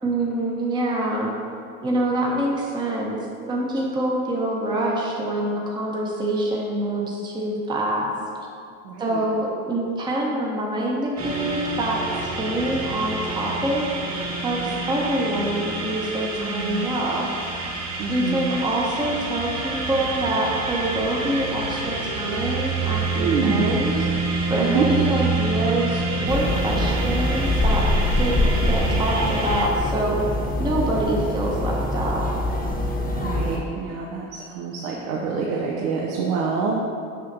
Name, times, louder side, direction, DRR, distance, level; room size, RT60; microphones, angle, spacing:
voice 1, 0.0-1.3 1.8-3.2 3.5-8.1 9.0-13.8 14.4-14.6 14.9-17.3 18.1-24.0 24.5-27.9 28.2-30.2 30.6-32.3, right 1 dB, 10° right, -2 dB, 0.7 m, -25 dB
voice 2, 8.8-9.3 16.4-16.9 18.0-18.6 23.2-23.7 24.6-24.9 33.1-36.7, right 5 dB, 75° right, -2 dB, 0.8 m, -26 dB
sound 1, 11.2-29.7, right 3 dB, 35° right, 1.3 m, -27 dB
sound 2, 26.3-33.6, left 2 dB, 20° left, 1.0 m, -24 dB
6.2 x 5.6 x 2.7 m, 2.4 s
hypercardioid pair, 90°, 46 cm